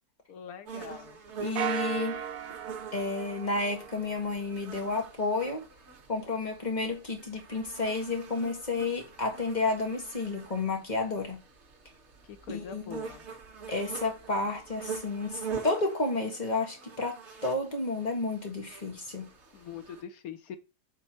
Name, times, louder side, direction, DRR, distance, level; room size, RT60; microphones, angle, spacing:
voice 1, 0.3-1.2 12.5-13.2 19.5-20.6, left 8 dB, 70° left, 1.3 m, -42 dB
sound 1, 0.7-20.0, right 6 dB, 50° right, 1.5 m, -45 dB
voice 2, 1.4-2.2 2.9-5.6 6.1-11.4 12.5-13.0 13.7-19.3, left 3 dB, 30° left, 1.6 m, -31 dB
sound 2, 1.6-4.3, right 8 dB, 70° right, 1.1 m, -36 dB
5.3 x 3.8 x 5.6 m
omnidirectional pair, 1.6 m